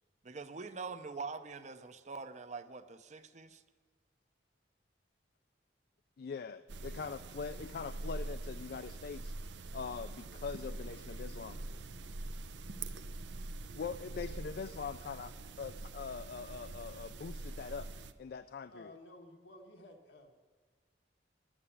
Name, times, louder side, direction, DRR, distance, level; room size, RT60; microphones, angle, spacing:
voice 1, 0.2-3.6, right 4 dB, 40° right, 10 dB, 0.6 m, -44 dB
voice 2, 6.2-9.3 9.7-11.6 13.8-17.9 18.2-18.9, left 5 dB, 60° left, 12 dB, 0.4 m, -42 dB
sound 1, 6.7-18.1, right 2 dB, 90° right, 0.6 m, -44 dB
voice 3, 11.4-12.2 13.8-13.9 18.7-20.3, left 1 dB, 90° left, 3 dB, 1.7 m, -55 dB
11.0 x 8.8 x 10.0 m, 1.5 s
head